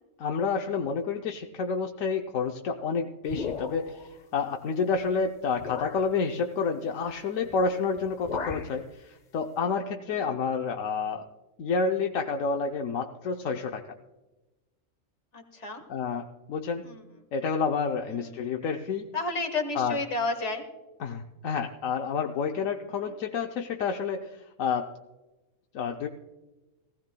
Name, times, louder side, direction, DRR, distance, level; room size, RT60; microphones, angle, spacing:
voice 1, 0.2-11.2 11.6-13.8 15.9-16.9 17.3-19.1 19.7-20.0 21.0-24.9 25.7-26.1, left 5 dB, 80° left, 2 dB, 1.1 m, -29 dB
sound 1, 3.3-4.1 4.9-5.1 5.6-6.1 7.5-7.7 8.0-8.8, left 5 dB, 40° left, 0.8 m, -36 dB
voice 2, 15.3-15.8 16.8-17.0 18.1-18.4 19.1-20.6 22.9-23.0, left 3 dB, 60° left, 4 dB, 2.0 m, -32 dB
19.5 x 15.5 x 2.2 m, 1.1 s
omnidirectional pair, 1.4 m